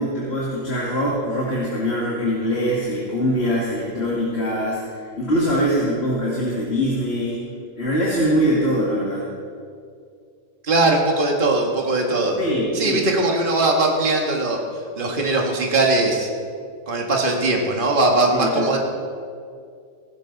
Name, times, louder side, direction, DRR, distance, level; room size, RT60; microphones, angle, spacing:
voice 1, 0.0-7.4 7.8-9.3 12.4-13.1 18.3-18.8, equal, 50° left, -6 dB, 2.4 m, -23 dB
voice 2, 10.6-12.4 12.7-14.6 15.0-16.3 16.9-18.8, right 2 dB, 40° right, 0 dB, 1.8 m, -20 dB
17.5 x 16.0 x 4.0 m, 2.3 s
omnidirectional pair, 1.4 m